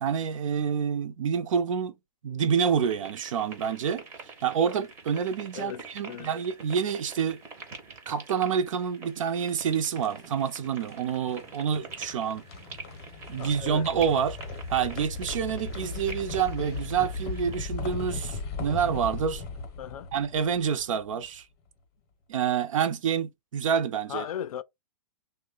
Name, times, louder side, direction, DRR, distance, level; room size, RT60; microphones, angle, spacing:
voice 1, 0.0-1.9 2.2-7.4 8.1-12.4 13.3-14.4 14.7-19.4 20.1-21.5 22.3-24.2, right 7 dB, 60° right, 0.5 m, -28 dB
sound 1, 2.8-17.7, right 4 dB, 10° right, 0.5 m, -46 dB
voice 2, 5.5-6.3 13.4-13.9 19.8-20.1 24.1-24.6, left 10 dB, 70° left, 0.4 m, -37 dB
sound 2, 9.1-21.2, left 4 dB, 25° left, 0.7 m, -38 dB
3.1 x 2.1 x 3.7 m
hypercardioid pair, 165°, 19 cm